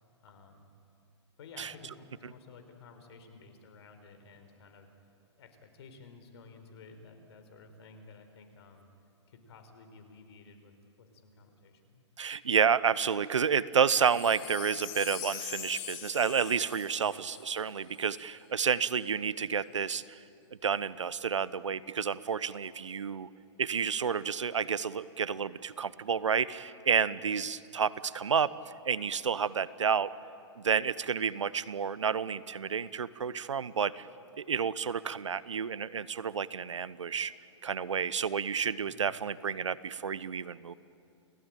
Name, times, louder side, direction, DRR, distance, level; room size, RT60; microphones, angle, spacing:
voice 1, 0.2-0.7 1.4-4.9 5.4-8.9 9.3-12.0 16.9-17.2 27.1-27.2 38.8-39.2, left 4 dB, 60° left, 7 dB, 4.6 m, -53 dB
voice 2, 12.2-20.2 20.6-23.3 23.6-28.5 28.8-30.1 30.6-34.1 34.4-37.3 37.6-40.7, right 6 dB, 90° right, 18 dB, 0.9 m, -30 dB
Wind chime, 13.9-18.3 18.8-18.9, left 10 dB, 45° left, 4.2 m, -43 dB
29.5 x 18.5 x 9.0 m, 2.7 s
hypercardioid pair, 125°, 15 cm